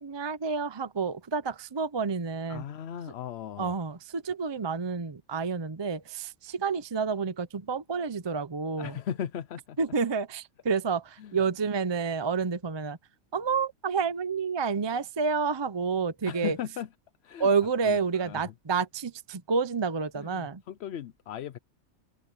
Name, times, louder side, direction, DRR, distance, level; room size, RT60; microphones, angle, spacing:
voice 1, 0.0-2.6 3.6-8.9 9.8-13.0 13.3-16.6 17.4-20.6, right 5 dB, 35° right, 0.4 m, -29 dB
voice 2, 2.5-3.8 8.8-9.8 11.2-11.4 16.3-16.9 17.2-17.5 17.8-18.5 20.1-21.6, left 9 dB, 60° left, 0.8 m, -37 dB
open air
omnidirectional pair, 1.5 m